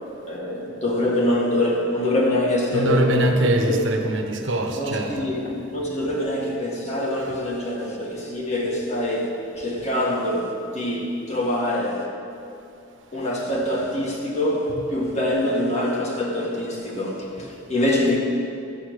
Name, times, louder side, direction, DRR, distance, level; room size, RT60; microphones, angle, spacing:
voice 1, 0.2-3.3 3.7-3.8 4.8-12.1 13.1-18.2, left 1 dB, 35° left, -3 dB, 1.9 m, -24 dB
voice 2, 2.7-5.3, right 1 dB, 75° right, 3 dB, 1.2 m, -23 dB
13.0 x 8.8 x 6.5 m, 2.7 s
head